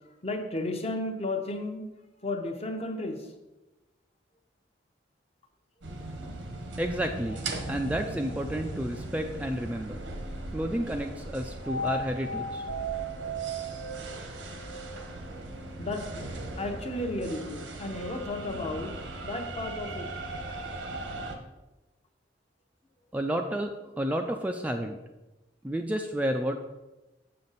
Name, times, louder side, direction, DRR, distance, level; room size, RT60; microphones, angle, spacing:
voice 1, 0.0-1.9 2.2-3.3 6.2-6.3 15.8-18.9 19.2-20.1, left 2 dB, 35° left, 4 dB, 0.8 m, -34 dB
sound 1, 5.8-21.3, right 2 dB, 85° right, 1.0 m, -37 dB
voice 2, 6.8-10.0 10.5-12.6 23.1-25.0 25.6-26.6, right 1 dB, 10° right, 3 dB, 0.3 m, -31 dB
6.8 x 6.3 x 4.0 m, 1.0 s
head